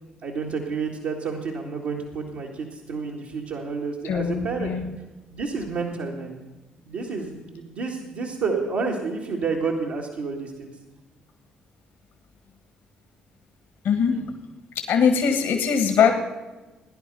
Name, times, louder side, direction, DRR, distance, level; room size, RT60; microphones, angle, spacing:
voice 1, 0.2-4.7 5.3-6.4 6.9-10.7 14.1-14.2, right 4 dB, 75° right, -4 dB, 1.9 m, -30 dB
voice 2, 4.0-5.0 13.8-14.2 14.7-16.1, left 7 dB, 75° left, 5 dB, 1.6 m, -21 dB
17.5 x 10.5 x 5.5 m, 1.2 s
hypercardioid pair, 55°, 4 cm